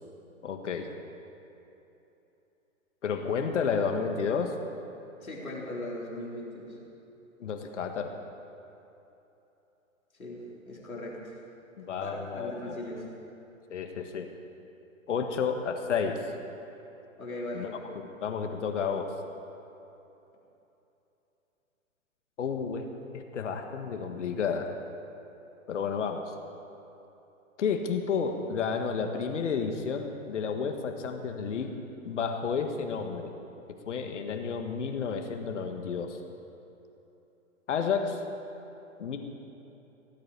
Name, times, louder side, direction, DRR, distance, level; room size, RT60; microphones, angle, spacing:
voice 1, 0.4-0.9 3.0-4.6 7.4-8.1 11.9-12.8 13.7-14.3 15.1-16.2 17.5-17.7 17.9-19.1 22.4-22.9 23.1-24.8 25.7-26.3 27.6-31.7 32.0-33.3 33.9-36.2 37.7-38.2 39.0-39.2, left 6 dB, 60° left, 5 dB, 1.7 m, -31 dB
voice 2, 5.2-6.8 10.2-11.4 12.0-13.0 17.2-17.7, left 1 dB, 90° left, -4 dB, 4.1 m, -38 dB
18.0 x 8.6 x 8.4 m, 3.0 s
figure-of-eight pair, 125°, 41 cm